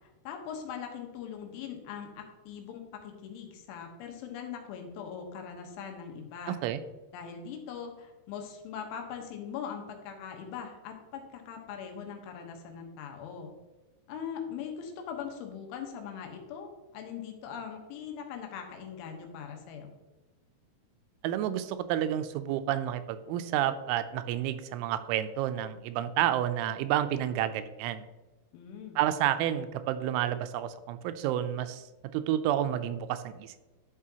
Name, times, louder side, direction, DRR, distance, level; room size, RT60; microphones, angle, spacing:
voice 1, 0.3-6.6 7.1-13.5 14.1-19.9 28.5-29.0, left 7 dB, 85° left, 3 dB, 3.5 m, -41 dB
voice 2, 6.5-6.8 21.2-28.0 29.0-31.8 32.1-33.7, right 11 dB, 85° right, 11 dB, 3.0 m, -30 dB
11.0 x 6.0 x 2.8 m, 1.1 s
omnidirectional pair, 5.4 m